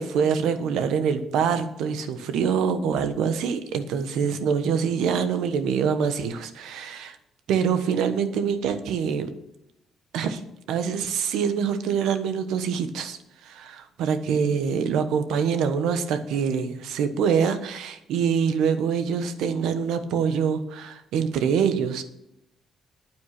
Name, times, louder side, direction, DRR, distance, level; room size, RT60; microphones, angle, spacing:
voice 1, 0.0-7.2 7.5-9.3 10.1-10.4 10.7-22.0, right 7 dB, 85° right, 10 dB, 1.2 m, -25 dB
9.4 x 9.4 x 6.0 m, 0.82 s
cardioid pair, 90°, 0 cm